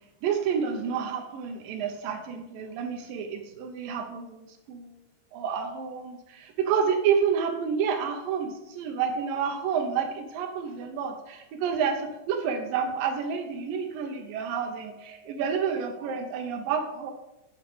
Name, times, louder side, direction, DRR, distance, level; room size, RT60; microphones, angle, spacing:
voice 1, 0.2-4.9 5.3-17.1, right 7 dB, 85° right, 4 dB, 1.9 m, -29 dB
8.2 x 7.8 x 6.1 m, 0.97 s
omnidirectional pair, 5.3 m